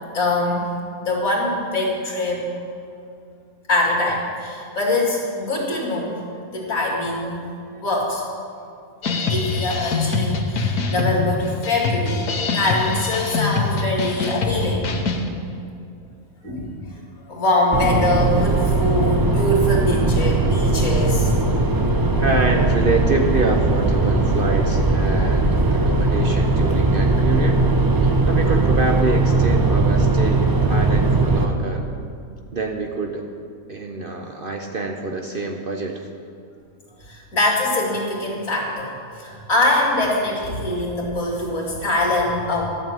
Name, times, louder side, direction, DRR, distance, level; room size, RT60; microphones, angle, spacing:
voice 1, 0.1-0.7 1.0-2.4 3.7-6.2 6.5-7.4 7.8-8.2 9.1-12.3 12.5-15.1 16.4-16.7 17.3-21.3 37.1-42.7, left 2 dB, 70° left, -2 dB, 2.8 m, -23 dB
sound 1, 9.0-15.3, left 4 dB, 85° left, 1.5 m, -24 dB
sound 2, 17.7-31.4, right 2 dB, 25° right, 0.5 m, -19 dB
voice 2, 22.2-27.6 28.3-31.9 32.5-33.3 33.7-36.1, right 3 dB, 45° right, 3 dB, 0.8 m, -26 dB
12.5 x 6.8 x 9.0 m, 2.5 s
omnidirectional pair, 1.5 m